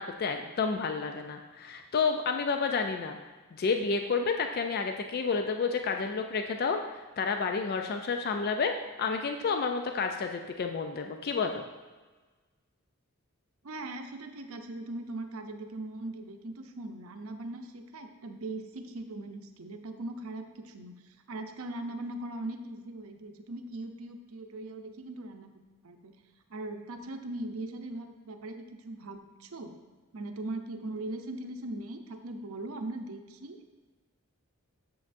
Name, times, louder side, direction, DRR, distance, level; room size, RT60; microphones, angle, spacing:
voice 1, 0.0-3.2 3.5-11.7, left 5 dB, 45° left, 5 dB, 0.4 m, -30 dB
voice 2, 13.6-26.1 26.5-29.8 30.1-33.6, right 2 dB, 75° right, 6 dB, 0.6 m, -40 dB
7.6 x 7.2 x 2.6 m, 1.3 s
head